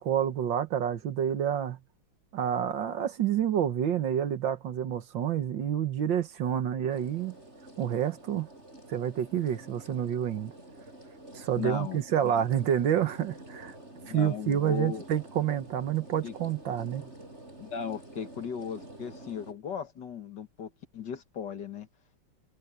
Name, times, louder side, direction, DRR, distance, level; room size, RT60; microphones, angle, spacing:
voice 1, 0.0-1.8 2.3-7.4 7.8-8.5 8.9-10.5 11.3-13.8 14.1-17.1, right 9 dB, 65° right, 1.9 m, -28 dB
sound 1, 6.9-19.5, right 1 dB, 30° right, 7.0 m, -49 dB
voice 2, 11.6-12.4 14.0-15.0 16.2-16.3 17.6-21.9, left 7 dB, 60° left, 2.0 m, -37 dB
omnidirectional pair, 2.3 m